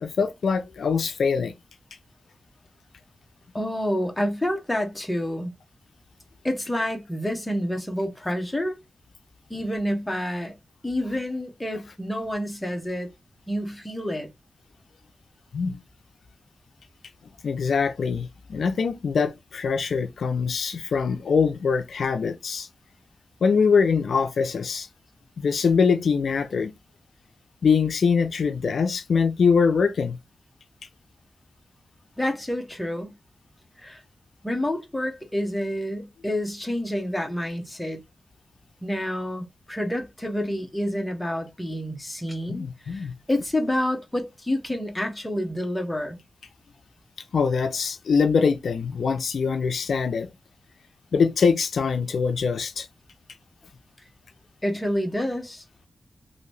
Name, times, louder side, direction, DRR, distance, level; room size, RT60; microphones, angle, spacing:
voice 1, 0.0-1.5 15.5-15.8 17.4-22.7 23.4-24.9 25.4-26.7 27.6-30.2 42.5-43.1 47.3-50.3 51.1-52.9, left 5 dB, 80° left, 0.4 m, -23 dB
voice 2, 3.5-5.5 6.4-8.8 9.5-10.5 10.8-13.1 13.5-14.3 32.2-33.1 33.8-34.0 34.4-38.0 38.8-46.2 54.6-55.6, left 1 dB, 10° left, 0.8 m, -28 dB
2.7 x 2.6 x 3.2 m
wide cardioid pair, 145°, 0 cm